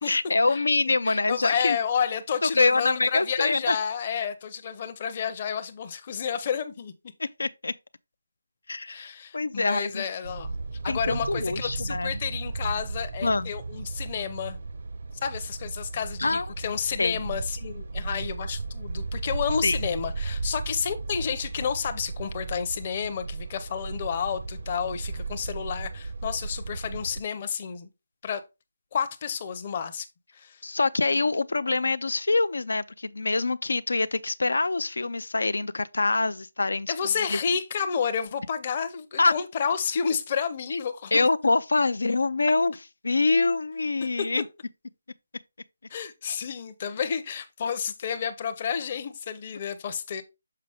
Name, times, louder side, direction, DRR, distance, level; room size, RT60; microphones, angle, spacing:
voice 1, 0.0-1.8 2.4-3.8 7.2-7.7 8.7-10.0 10.9-12.2 13.2-13.5 16.2-16.5 17.0-17.2 19.6-19.8 30.6-36.9 37.3-37.4 39.2-39.3 40.7-40.8 41.1-42.8 43.0-44.4, left 3 dB, 85° left, 0.4 m, -25 dB
voice 2, 1.0-6.9 8.9-10.5 10.8-14.6 15.2-27.9 28.2-28.4 28.9-30.1 30.4-30.6 36.9-41.3 44.2-44.3 45.9-50.2, left 7 dB, 25° left, 0.6 m, -30 dB
sound 1, 10.2-27.2, right 3 dB, 45° right, 0.5 m, -35 dB
6.7 x 4.8 x 3.4 m
hypercardioid pair, 175°, 0 cm